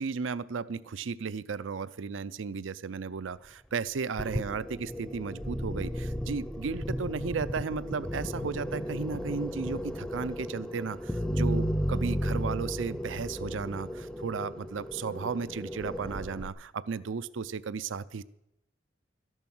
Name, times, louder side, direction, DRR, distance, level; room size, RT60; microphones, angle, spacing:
voice 1, 0.0-18.2, right 5 dB, 90° right, 16 dB, 0.5 m, -34 dB
sound 1, 4.2-16.5, equal, 5° left, 0.5 m, -34 dB
13.5 x 11.0 x 6.1 m, 0.85 s
head